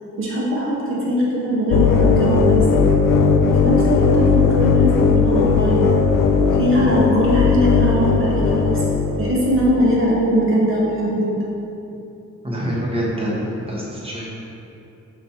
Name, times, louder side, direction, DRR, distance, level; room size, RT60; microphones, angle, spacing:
voice 1, 0.2-2.6 3.5-5.9 6.5-8.7 9.2-11.5, equal, 40° right, -5 dB, 1.2 m, -20 dB
sound 1, 1.7-9.8, left 5 dB, 90° left, 0.5 m, -17 dB
voice 2, 12.4-14.3, equal, 15° right, -6 dB, 1.1 m, -25 dB
5.1 x 4.3 x 4.4 m, 2.9 s
wide cardioid pair, 170°, 32 cm